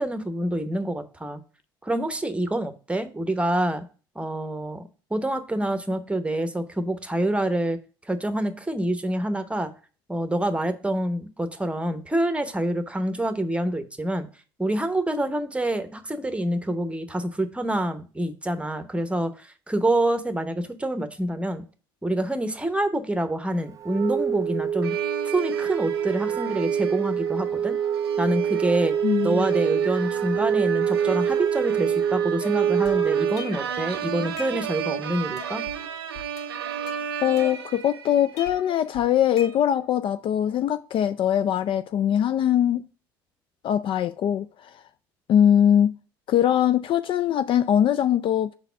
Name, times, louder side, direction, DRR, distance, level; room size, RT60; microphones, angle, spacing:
voice 1, 0.0-1.4 1.8-3.8 4.1-4.8 5.1-7.8 8.1-9.7 10.1-14.3 14.6-21.6 22.0-25.0 25.3-27.8 28.2-28.9 29.2-35.7, right 1 dB, 10° right, 0.9 m, -26 dB
Wind instrument woodwind instrument, 23.8-33.6, right 8 dB, 25° right, 0.7 m, -25 dB
sound 1, 24.8-38.5, right 8 dB, 90° right, 0.5 m, -35 dB
voice 2, 29.0-29.5 37.2-42.8 43.6-44.8 45.3-46.0 46.3-48.5, left 10 dB, 45° left, 0.3 m, -22 dB
sound 2, 32.4-33.8 34.2-35.0 35.4-35.8 36.1-37.9 38.4-40.0, left 4 dB, 60° left, 1.1 m, -42 dB
5.3 x 4.0 x 5.7 m
hypercardioid pair, 65°, 12 cm